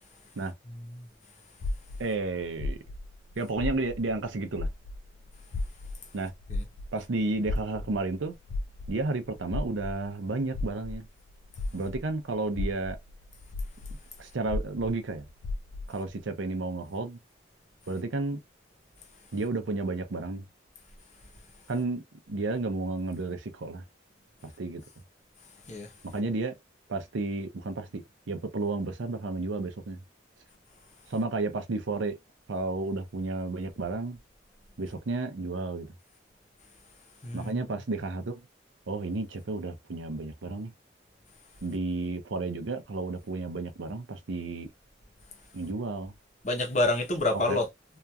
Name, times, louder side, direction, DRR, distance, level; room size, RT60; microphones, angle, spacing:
voice 1, 0.7-1.1 6.5-6.6 25.6-25.9 37.2-37.6 46.4-47.7, left 2 dB, 35° left, 0.7 m, -28 dB
sound 1, 1.6-4.3 4.5-12.1 12.5-16.0, left 2 dB, 75° left, 0.4 m, -35 dB
voice 2, 2.0-2.8 3.4-4.7 6.1-6.3 6.9-8.4 8.9-11.1 11.7-13.0 14.2-15.2 15.9-17.2 17.9-18.4 19.3-20.4 21.7-23.8 24.4-24.8 26.0-26.5 26.9-30.0 31.1-32.2 32.5-34.2 34.8-35.9 37.3-38.4 38.9-40.7 41.6-44.7 45.5-46.1 47.5-47.6, right 3 dB, 80° right, 0.6 m, -32 dB
2.9 x 2.4 x 2.3 m
head